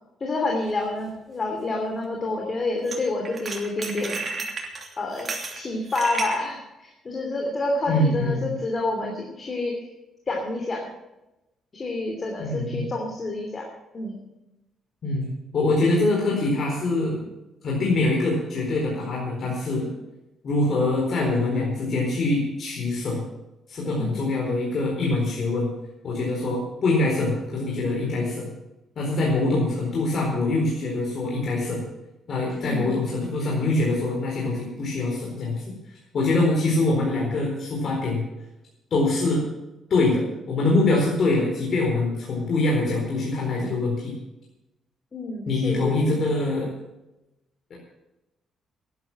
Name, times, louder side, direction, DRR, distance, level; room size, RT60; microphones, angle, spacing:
voice 1, 0.2-4.3 5.0-9.7 10.3-10.9 11.7-13.6 13.9-14.2 23.8-24.1 32.5-32.9 45.1-46.1, left 2 dB, 35° left, 1 dB, 3.0 m, -28 dB
sound 1, 0.7-0.8 2.9-3.0 3.2-6.4, right 4 dB, 40° right, 2.8 m, -32 dB
voice 2, 7.9-8.6 12.4-12.9 15.0-17.3 17.6-19.9 20.4-23.2 23.7-25.7 26.0-28.5 29.0-31.8 32.3-35.6 36.1-38.2 38.9-39.4 39.9-44.1 45.5-46.7 47.7-47.8, left 2 dB, 55° left, -2 dB, 4.3 m, -24 dB
12.0 x 11.0 x 7.6 m, 0.96 s
cardioid pair, 90°, 0 cm